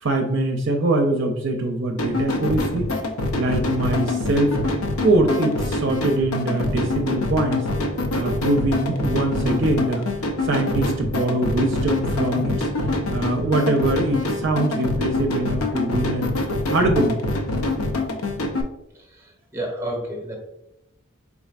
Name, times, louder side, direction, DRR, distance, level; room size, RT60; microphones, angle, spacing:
voice 1, 0.0-2.9 3.3-4.6 5.0-7.7 8.1-10.0 10.4-12.7 13.1-16.3 16.7-17.2, right 2 dB, 55° right, 3 dB, 0.5 m, -23 dB
sound 1, 2.0-18.6, left 2 dB, 80° left, 0.6 m, -25 dB
voice 2, 19.5-20.4, right 1 dB, 15° right, 1 dB, 0.7 m, -29 dB
4.2 x 3.6 x 2.4 m, 0.84 s
head